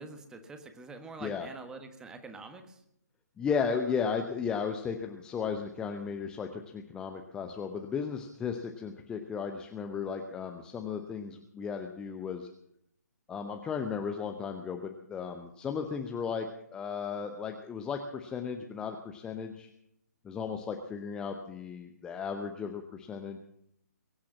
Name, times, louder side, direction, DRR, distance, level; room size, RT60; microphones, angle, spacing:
voice 1, 0.0-2.8 16.1-16.2, right 3 dB, 5° right, 7 dB, 1.4 m, -46 dB
voice 2, 3.4-12.5 13.3-19.7 20.2-23.4, left 6 dB, 10° left, 5 dB, 0.8 m, -35 dB
22.5 x 8.7 x 7.4 m, 0.75 s
figure-of-eight pair, 135°, 9 cm